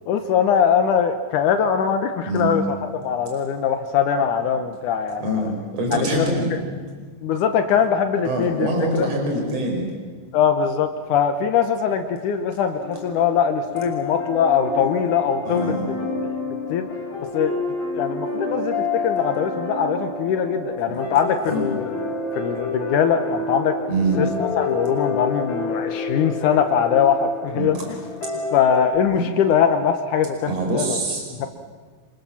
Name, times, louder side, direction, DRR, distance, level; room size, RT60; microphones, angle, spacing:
voice 1, 0.1-2.8 3.0-5.4 5.9-6.3 7.2-8.7 8.9-9.1 10.3-15.8 16.7-16.8 17.3-17.6 17.9-21.9 22.4-23.8 24.2-28.0 28.5-30.5 30.7-30.9 31.4-31.5, left 7 dB, 85° left, 7 dB, 1.7 m, -21 dB
voice 2, 5.2-6.5 8.2-9.9 15.4-15.9 21.4-21.6 23.9-24.2 27.5-27.7 29.1-29.2 30.5-31.5, right 1 dB, 35° right, 1 dB, 6.1 m, -24 dB
sound 1, 12.8-28.9, left 3 dB, 55° left, 6.0 m, -29 dB
27.5 x 26.0 x 7.3 m, 1.5 s
omnidirectional pair, 5.1 m